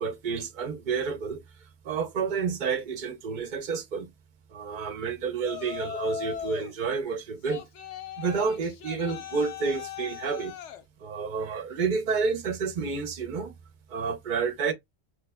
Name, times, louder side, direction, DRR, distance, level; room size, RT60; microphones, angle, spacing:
voice 1, 0.0-1.4 1.8-4.1 4.5-7.6 8.2-10.5 11.0-13.5 13.9-14.7, right 5 dB, 50° right, 0.7 m, -30 dB
Yell, 5.4-6.8 7.4-10.8, left 9 dB, 90° left, 1.0 m, -39 dB
3.2 x 2.1 x 3.4 m
omnidirectional pair, 1.1 m